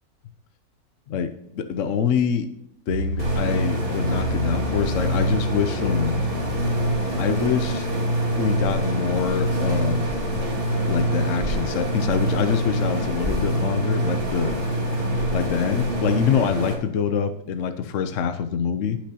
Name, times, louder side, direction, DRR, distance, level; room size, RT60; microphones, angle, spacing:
voice 1, 1.1-2.5 2.9-6.2 7.2-7.9 8.4-10.1 10.9-14.6 15.3-19.0, left 7 dB, 60° left, 9 dB, 0.8 m, -25 dB
sound 1, 2.9-12.2 12.6-12.7, equal, 60° right, 1.6 m, -35 dB
sound 2, 3.2-16.7, right 1 dB, 30° right, 2.4 m, -25 dB
18.0 x 6.1 x 2.9 m, 0.77 s
omnidirectional pair, 1.9 m